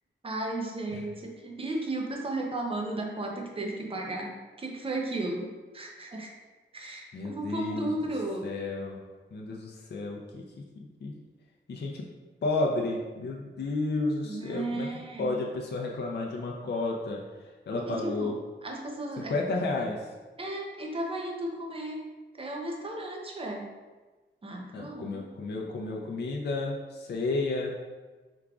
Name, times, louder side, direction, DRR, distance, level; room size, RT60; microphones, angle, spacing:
voice 1, 0.2-6.3 6.7-8.5 14.2-15.4 17.7-18.3 18.6-19.3 20.4-22.1 22.4-23.7 24.4-25.3, right 2 dB, 30° right, 1 dB, 0.6 m, -34 dB
voice 2, 7.1-7.9 8.4-9.0 9.3-10.4 10.8-11.1 11.7-12.0 12.4-14.9 15.2-18.4 19.2-20.1 24.7-27.7, left 2 dB, 55° left, -1 dB, 0.5 m, -32 dB
4.8 x 3.5 x 2.3 m, 1.3 s
wide cardioid pair, 135°, 20 cm